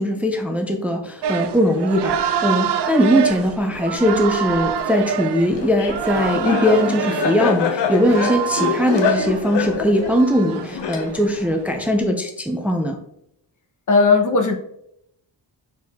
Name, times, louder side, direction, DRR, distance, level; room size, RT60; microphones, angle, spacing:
voice 1, 0.0-13.0, equal, 5° right, 3 dB, 0.5 m, -20 dB
sound 1, 1.2-12.0, right 8 dB, 70° right, 0.6 m, -27 dB
Laughter, 5.6-11.4, left 7 dB, 75° left, 0.9 m, -25 dB
voice 2, 13.9-14.6, left 4 dB, 45° left, 3 dB, 1.1 m, -16 dB
6.3 x 4.4 x 3.6 m, 0.74 s
wide cardioid pair, 160°, 43 cm